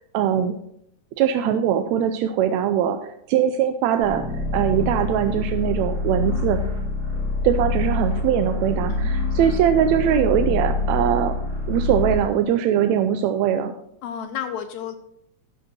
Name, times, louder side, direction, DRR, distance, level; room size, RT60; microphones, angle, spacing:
voice 1, 0.1-0.5 1.2-3.0 3.3-4.2 4.5-6.6 7.4-11.3 11.7-13.7, right 9 dB, 80° right, 7 dB, 1.8 m, -21 dB
sound 1, 4.0-12.2, left 2 dB, 60° right, 5.6 m, -25 dB
voice 2, 8.9-9.5 14.0-15.0, left 8 dB, 80° left, 8 dB, 1.9 m, -32 dB
12.5 x 6.5 x 4.3 m, 0.73 s
omnidirectional pair, 3.4 m